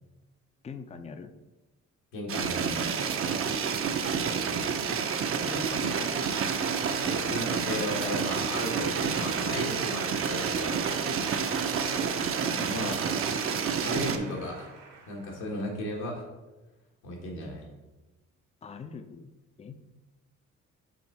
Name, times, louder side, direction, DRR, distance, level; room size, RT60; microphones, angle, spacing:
voice 1, 0.6-1.3 4.9-5.1 5.4-6.2 12.4-13.0 18.6-19.3 19.6-19.8, left 5 dB, 20° left, 10 dB, 0.4 m, -41 dB
voice 2, 2.1-2.9 7.0-10.8 12.6-13.0 13.8-14.7 15.1-16.2 17.0-17.7, left 1 dB, 85° left, -1 dB, 1.7 m, -35 dB
sound 1, 2.3-14.2, right 6 dB, 45° right, 0.6 m, -29 dB
Applause, 3.0-15.5, right 4 dB, 70° right, 1.2 m, -43 dB
6.3 x 3.7 x 4.1 m, 1.1 s
cardioid pair, 90°, 30 cm